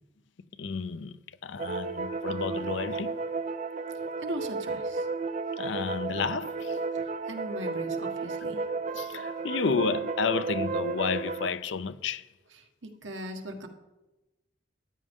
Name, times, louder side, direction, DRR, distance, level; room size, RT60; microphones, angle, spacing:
voice 1, 0.6-3.2 5.6-6.8 8.9-12.3, left 5 dB, 80° left, 0.5 m, -31 dB
sound 1, 1.6-11.5, right 4 dB, 40° right, 0.4 m, -33 dB
voice 2, 4.2-5.1 6.9-8.7 12.5-13.7, right 1 dB, 85° right, 1.4 m, -39 dB
13.5 x 9.8 x 3.6 m
head